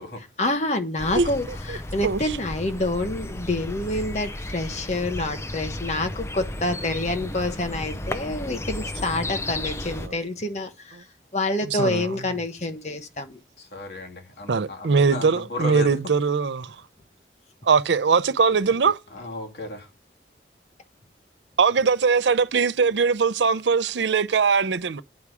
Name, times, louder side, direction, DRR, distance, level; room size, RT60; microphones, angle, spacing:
voice 1, 0.4-11.0 11.3-13.4, left 2 dB, 40° left, 1.1 m, -27 dB
sound 1, 1.0-10.1, left 1 dB, 15° left, 0.6 m, -33 dB
voice 2, 2.0-2.4 10.0-10.2 11.6-12.2 14.5-16.8 17.6-19.0 21.6-25.0, right 5 dB, 90° right, 0.6 m, -21 dB
voice 3, 13.6-16.0 19.1-19.9, left 2 dB, 70° left, 2.2 m, -35 dB
9.5 x 4.8 x 7.1 m
head